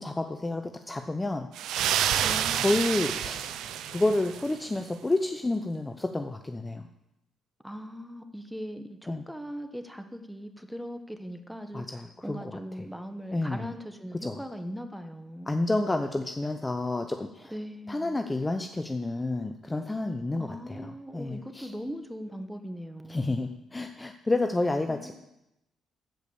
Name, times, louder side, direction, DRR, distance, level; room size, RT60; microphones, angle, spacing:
voice 1, 0.0-1.5 2.6-3.6 3.9-6.9 9.1-9.2 11.7-12.9 13.3-13.7 14.2-14.4 15.5-17.5 17.9-21.7 23.1-25.1, left 2 dB, 15° left, 6 dB, 0.7 m, -30 dB
sound 1, 1.6-4.6, right 10 dB, 85° right, 0.6 m, -29 dB
voice 2, 2.1-2.9 7.6-11.9 12.2-15.6 17.5-18.2 20.4-23.4 24.9-25.1, equal, ahead, 7 dB, 1.2 m, -40 dB
15.0 x 5.1 x 7.0 m, 0.88 s
cardioid pair, 90°, 0 cm